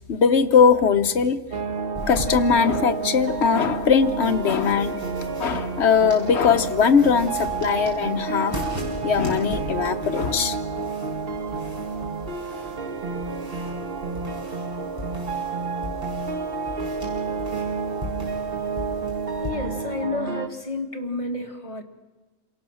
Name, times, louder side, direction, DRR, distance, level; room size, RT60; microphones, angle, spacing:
voice 1, 0.1-1.4 2.1-5.0 5.4-8.6 9.0-10.6, left 6 dB, 55° left, 8 dB, 1.2 m, -20 dB
sound 1, 1.5-20.5, right 4 dB, 45° right, 1.3 m, -30 dB
sound 2, 1.9-19.5, left 1 dB, 15° right, 6.0 m, -39 dB
voice 2, 19.4-21.8, left 3 dB, 25° left, 2 dB, 1.9 m, -31 dB
27.0 x 18.0 x 6.4 m, 1.2 s
omnidirectional pair, 1.4 m